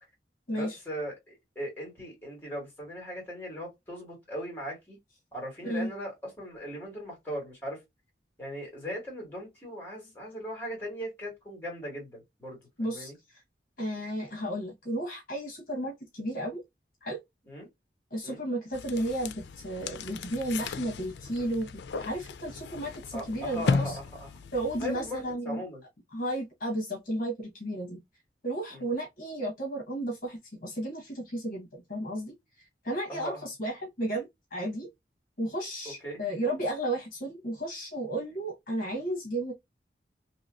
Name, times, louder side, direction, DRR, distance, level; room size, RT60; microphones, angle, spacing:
voice 1, 0.5-5.0 5.3-7.8 8.4-12.6 12.9-13.1 17.5-17.7 18.2-18.4 23.1-24.3 24.8-25.8 28.7-28.8 33.1-33.5 36.0-36.2, equal, 10° left, 1.7 m, -38 dB
voice 2, 12.8-13.1 13.8-16.6 17.0-17.2 18.1-24.0 24.5-25.6 26.1-28.0 28.4-32.4 32.8-34.9 35.4-39.5, right 1 dB, 50° left, 1.1 m, -33 dB
sound 1, 18.7-25.3, left 4 dB, 80° left, 0.4 m, -35 dB
2.9 x 2.9 x 2.5 m
head